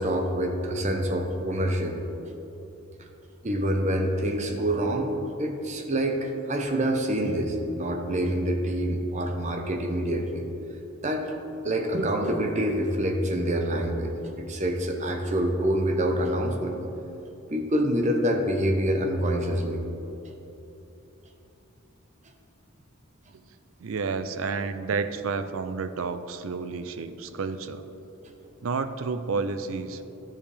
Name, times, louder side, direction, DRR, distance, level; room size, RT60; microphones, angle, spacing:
voice 1, 0.0-2.0 3.4-5.1 5.4-10.4 11.0-11.3 11.6-14.1 14.4-16.8 17.5-19.8 28.2-28.3, right 1 dB, 35° right, 3 dB, 0.8 m, -26 dB
voice 2, 23.8-27.8 28.6-30.0, right 4 dB, 70° right, 11 dB, 0.4 m, -30 dB
12.0 x 7.3 x 3.4 m, 3.0 s
head